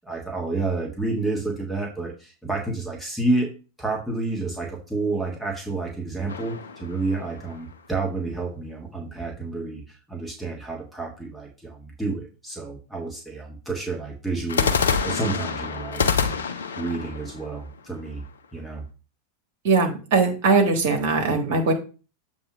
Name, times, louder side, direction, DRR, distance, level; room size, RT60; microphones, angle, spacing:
voice 1, 0.0-3.5 3.8-16.4 16.8-18.2 18.5-18.8, right 3 dB, ahead, 1 dB, 1.5 m, -30 dB
sound 1, 6.3-7.7 14.5-18.4, left 6 dB, 70° left, 0.6 m, -27 dB
voice 2, 19.6-21.7, right 4 dB, 55° right, 5 dB, 1.4 m, -20 dB
7.7 x 2.9 x 6.0 m, 0.34 s
figure-of-eight pair, 90°, 0 cm